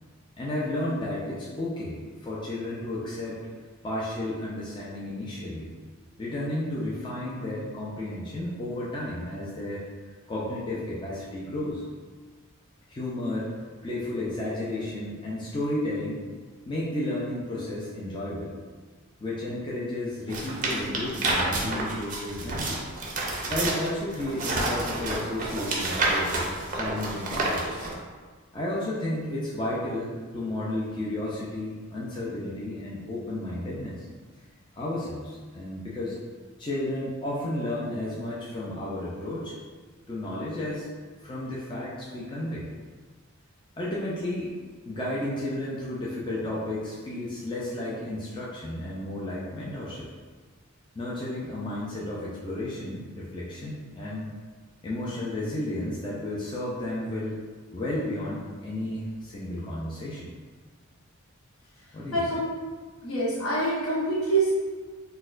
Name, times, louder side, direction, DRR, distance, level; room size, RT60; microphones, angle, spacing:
voice 1, 0.4-3.4 3.8-5.7 6.2-9.8 10.3-11.8 12.9-13.5 13.8-16.2 16.7-18.5 19.2-22.8 23.5-26.3 26.7-27.9 28.5-34.0 34.7-36.2 36.6-39.6 40.1-40.9 41.2-42.7 43.8-44.5 44.9-50.1 51.0-54.3 54.8-57.4 57.7-60.3 61.9-62.3, left 1 dB, 20° left, -7 dB, 0.4 m, -32 dB
sound 1, 20.3-27.9, right 2 dB, 35° right, 0.5 m, -29 dB
voice 2, 62.1-62.5 63.0-64.5, right 2 dB, 70° left, -6 dB, 1.0 m, -25 dB
4.1 x 2.2 x 2.5 m, 1.5 s
head